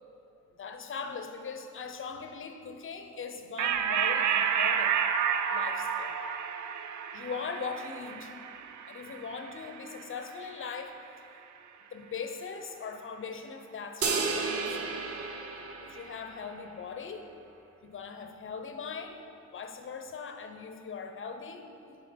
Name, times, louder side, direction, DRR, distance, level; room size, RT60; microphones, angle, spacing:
voice 1, 0.6-5.0 5.5-6.2 7.1-8.3 8.9-11.0 11.9-15.0 15.8-17.3 17.8-19.2 19.5-22.0, left 5 dB, 45° left, 6 dB, 0.8 m, -40 dB
sound 1, 3.6-10.5, right 7 dB, 70° right, 0.6 m, -30 dB
sound 2, 14.0-16.6, right 4 dB, 50° right, 0.9 m, -33 dB
10.5 x 5.2 x 5.2 m, 2.8 s
cardioid pair, 90°, 30 cm